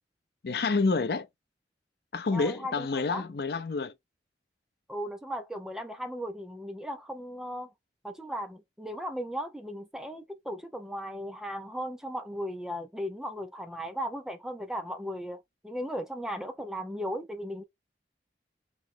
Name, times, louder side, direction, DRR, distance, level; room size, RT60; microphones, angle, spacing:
voice 1, 0.4-1.3 2.1-3.9, left 4 dB, 60° left, 0.5 m, -28 dB
voice 2, 2.3-3.2 4.9-7.7 8.0-15.4 15.6-17.6, equal, 5° right, 0.4 m, -36 dB
3.1 x 3.0 x 3.7 m
head